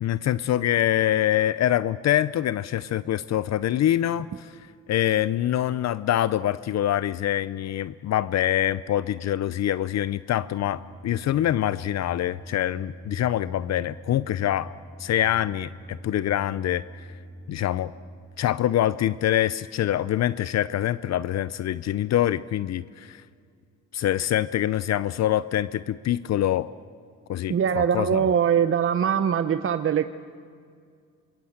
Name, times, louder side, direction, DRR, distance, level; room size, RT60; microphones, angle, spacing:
voice 1, 0.0-4.6 4.9-14.7 15.0-17.1 17.5-17.9 18.4-23.2 23.9-26.7 27.3-28.2, left 12 dB, 60° left, 16 dB, 0.6 m, -25 dB
sound 1, 10.4-18.2, right 1 dB, 20° left, 6.5 m, -44 dB
voice 2, 27.5-30.0, right 8 dB, 45° right, 11 dB, 0.8 m, -22 dB
25.5 x 21.5 x 8.0 m, 2.2 s
cardioid pair, 90°, 30 cm